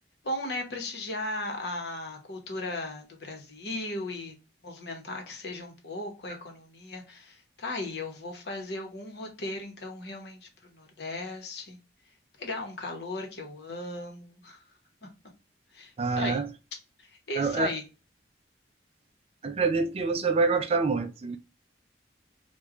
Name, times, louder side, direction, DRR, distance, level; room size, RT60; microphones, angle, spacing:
voice 1, 0.2-4.3 4.6-11.8 12.4-14.6 15.7-16.4 17.0-17.8, left 2 dB, 65° left, 0.9 m, -37 dB
voice 2, 16.0-16.5 17.4-17.7 19.4-21.4, right 4 dB, 35° right, 0.3 m, -26 dB
3.1 x 2.2 x 3.7 m
head